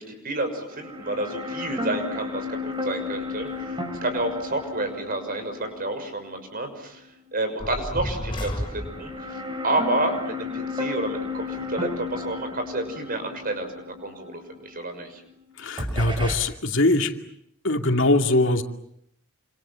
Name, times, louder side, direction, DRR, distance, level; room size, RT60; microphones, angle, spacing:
voice 1, 0.0-7.1 7.3-9.4 9.6-15.2, right 2 dB, 45° right, 7 dB, 6.3 m, -30 dB
sound 1, 0.7-7.0 7.3-7.4 8.4-15.4 15.8-16.4, left 3 dB, 25° right, 5.7 m, -33 dB
sound 2, 7.6-9.3, left 1 dB, 25° left, 6.1 m, -31 dB
voice 2, 15.6-17.1 17.6-18.6, left 2 dB, 65° left, 5 dB, 2.5 m, -22 dB
29.0 x 27.0 x 7.6 m, 0.75 s
head